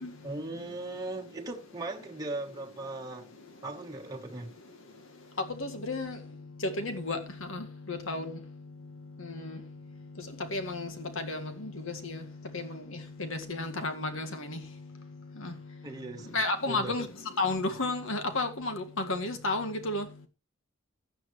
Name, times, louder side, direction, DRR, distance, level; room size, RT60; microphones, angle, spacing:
voice 1, 0.2-3.3 3.6-4.5 15.8-16.4 16.7-17.0, right 2 dB, 20° right, 1.2 m, -38 dB
voice 2, 5.5-6.2 6.6-8.4 9.2-9.6 10.5-12.2 12.5-14.6 15.4-15.5 16.3-17.1 17.4-20.1, left 2 dB, 65° left, 1.8 m, -33 dB
15.5 x 10.0 x 3.1 m
head